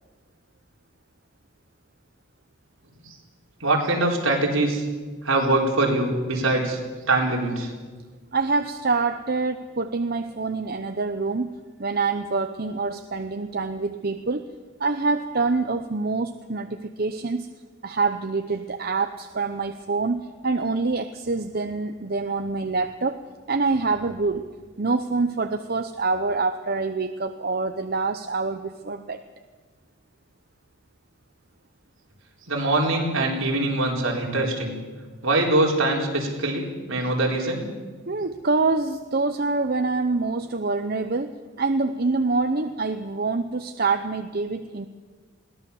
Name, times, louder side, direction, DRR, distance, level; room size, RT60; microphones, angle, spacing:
voice 1, 3.6-4.8 5.2-6.8 7.1-7.7 32.5-34.8 35.2-37.6, right 2 dB, 70° right, -1 dB, 4.3 m, -23 dB
voice 2, 8.3-14.5 14.8-17.5 17.8-23.2 23.5-24.5 24.8-29.2 38.1-44.9, right 3 dB, 45° right, 8 dB, 0.7 m, -26 dB
21.5 x 17.5 x 7.1 m, 1.4 s
head